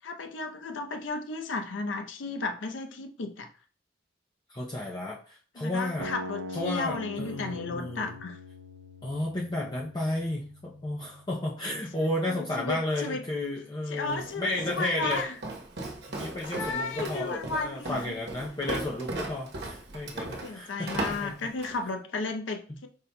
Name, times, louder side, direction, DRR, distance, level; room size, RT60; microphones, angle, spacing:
voice 1, 0.0-3.5 5.6-8.4 12.3-13.2 13.9-15.4 16.5-18.2 20.4-22.9, left 3 dB, 90° left, 5 dB, 0.6 m, -34 dB
voice 2, 4.5-6.1 6.5-8.1 9.0-15.3 16.1-21.3 22.7-22.8, left 1 dB, 20° left, -3 dB, 0.5 m, -33 dB
sound 1, 6.0-12.0, left 2 dB, 90° right, 0.4 m, -43 dB
Walk footsteps, 14.1-21.8, right 2 dB, 60° right, 1.0 m, -37 dB
5.1 x 4.2 x 2.2 m, 0.40 s
head